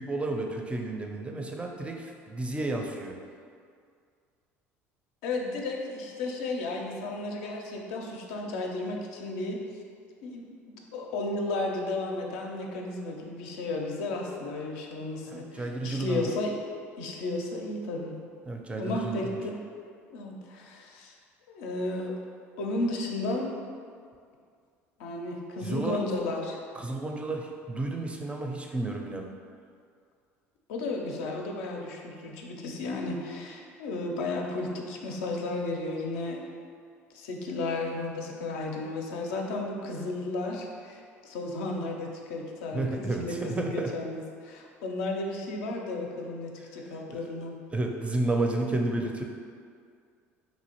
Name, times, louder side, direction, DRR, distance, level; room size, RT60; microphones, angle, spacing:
voice 1, 0.0-3.2 15.3-16.3 18.5-19.4 25.6-26.0 26.7-29.3 42.7-43.9 47.2-47.3 47.7-49.2, right 2 dB, 15° right, 2 dB, 0.4 m, -31 dB
voice 2, 5.2-9.6 10.2-16.6 17.0-18.2 18.8-19.6 20.1-21.1 21.5-22.1 22.6-23.5 25.0-26.6 30.7-36.5 37.1-47.5, left 2 dB, 70° left, 0 dB, 0.4 m, -33 dB
3.1 x 2.5 x 2.9 m, 2.2 s
hypercardioid pair, 65°, 7 cm